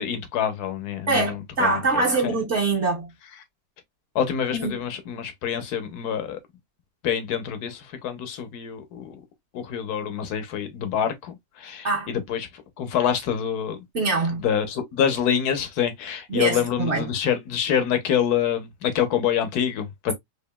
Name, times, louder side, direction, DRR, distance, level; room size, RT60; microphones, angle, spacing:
voice 1, 0.0-2.4 4.1-6.4 7.0-9.2 9.5-12.5 12.8-13.8 14.4-20.1, left 8 dB, 70° left, 1.4 m, -26 dB
voice 2, 1.1-3.1 4.5-4.8 11.8-12.1 13.9-14.4 16.3-17.1, right 3 dB, 45° right, 1.5 m, -24 dB
4.9 x 2.7 x 2.2 m
omnidirectional pair, 1.8 m